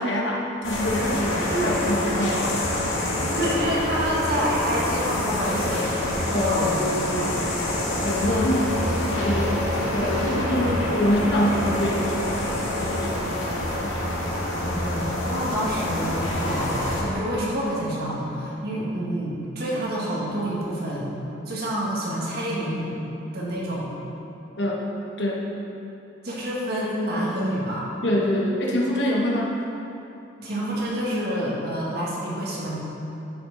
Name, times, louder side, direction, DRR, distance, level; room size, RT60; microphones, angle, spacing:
voice 1, 0.0-2.6 6.3-14.0 24.6-24.8 25.2-25.4 28.0-29.5, left 1 dB, 60° left, -2 dB, 1.2 m, -26 dB
sound 1, 0.6-17.0, left 1 dB, 80° left, 1.9 m, -26 dB
voice 2, 1.5-1.8 3.1-5.9 6.3-6.9 10.5-10.9 14.7-21.1 21.4-22.9 23.3-23.9 26.2-27.8 30.4-32.7, equal, 50° right, -5 dB, 1.8 m, -28 dB
11.0 x 5.8 x 3.9 m, 2.9 s
head